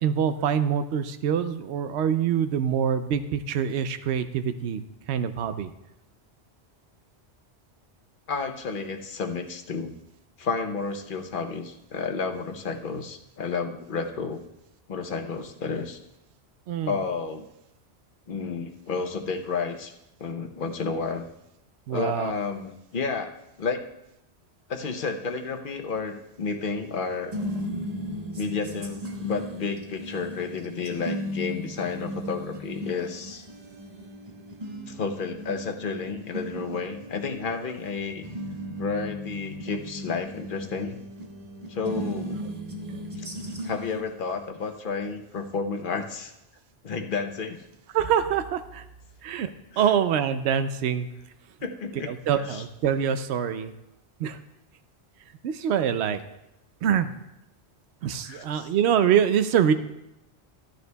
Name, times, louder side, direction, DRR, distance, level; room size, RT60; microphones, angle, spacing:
voice 1, 0.0-4.8 5.1-5.7 16.7-16.9 21.9-22.3 47.9-48.8 49.2-49.5 49.8-51.1 52.3-53.7 54.2-54.4 55.4-56.2 56.8-57.1 58.0-59.7, right 8 dB, 80° right, 11 dB, 0.8 m, -24 dB
voice 2, 8.3-9.9 10.4-14.4 14.9-16.0 16.8-17.4 18.3-19.9 20.2-21.2 21.9-23.8 24.7-27.3 28.3-33.4 34.9-38.2 38.8-41.0 41.7-42.4 43.2-43.3 43.6-46.3 46.8-47.6 49.7-49.9 51.6-52.6 58.2-58.7, left 4 dB, 55° left, 5 dB, 0.9 m, -31 dB
sound 1, 26.5-44.0, equal, 40° right, 1.1 m, -36 dB
14.0 x 9.4 x 2.2 m, 0.89 s
omnidirectional pair, 1.1 m